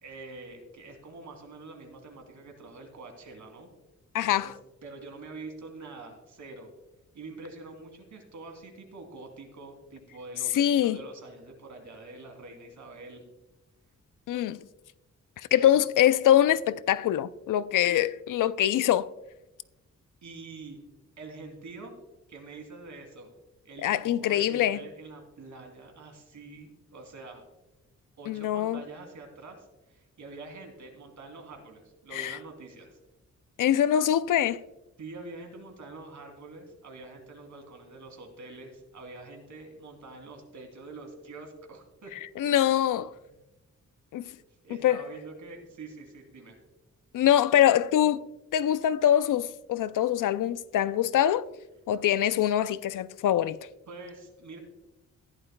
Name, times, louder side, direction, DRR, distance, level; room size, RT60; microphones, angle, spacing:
voice 1, 0.0-3.7 4.3-4.5 4.8-6.7 7.1-13.2 15.6-15.7 20.2-20.8 21.2-21.9 22.3-23.3 23.6-27.5 28.2-33.0 35.0-42.1 42.4-42.6 43.3-43.4 44.6-46.6 53.9-54.6, right 3 dB, 70° right, 2.8 m, -45 dB
voice 2, 4.1-4.5 10.5-11.0 14.3-14.6 15.4-19.1 23.8-24.8 28.3-28.8 32.1-32.4 33.6-34.6 42.4-43.1 44.1-44.2 44.8-45.0 47.1-48.3 48.5-51.5 51.9-53.6, left 11 dB, 85° left, 0.5 m, -24 dB
14.5 x 11.0 x 2.2 m
wide cardioid pair, 120°, 31 cm